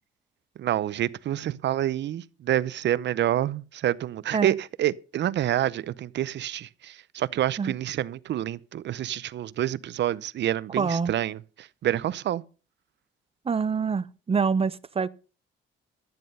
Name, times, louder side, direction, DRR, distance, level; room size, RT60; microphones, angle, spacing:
voice 1, 0.6-12.4, right 12 dB, 65° right, 0.7 m, -28 dB
voice 2, 10.8-11.1 13.4-15.1, right 5 dB, 30° right, 0.7 m, -26 dB
12.0 x 9.4 x 5.4 m
cardioid pair, 90°, 20 cm